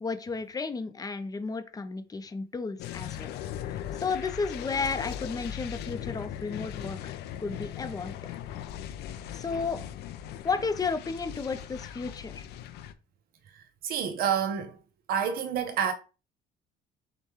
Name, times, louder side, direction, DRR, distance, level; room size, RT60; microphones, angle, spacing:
voice 1, 0.0-3.3 4.0-8.1 9.3-9.8 10.4-12.4, left 4 dB, 20° left, 0.6 m, -33 dB
sound 1, 2.8-12.9, left 10 dB, 75° left, 0.5 m, -39 dB
voice 2, 13.5-14.8 15.1-15.9, right 8 dB, 60° right, 0.6 m, -29 dB
6.5 x 2.2 x 3.0 m
cardioid pair, 110°, 17 cm